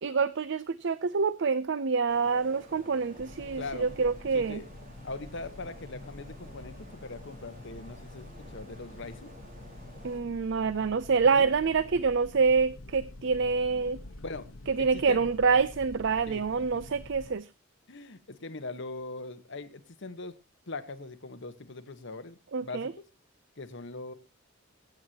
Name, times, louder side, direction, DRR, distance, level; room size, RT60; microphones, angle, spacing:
voice 1, 0.0-4.6 10.0-14.0 14.7-17.5 22.5-22.9, right 5 dB, 65° right, 16 dB, 0.6 m, -26 dB
sound 1, 2.1-10.2, equal, 45° right, 4.4 m, -52 dB
sound 2, 3.2-17.3, left 1 dB, 85° left, 1.2 m, -47 dB
voice 2, 3.5-4.7 5.0-9.3 11.3-11.5 14.2-14.5 14.8-15.2 15.5-15.6 16.3-16.4 17.9-20.3 20.7-22.9 23.6-24.1, left 3 dB, 65° left, 11 dB, 1.2 m, -41 dB
22.0 x 9.2 x 2.9 m, 0.28 s
head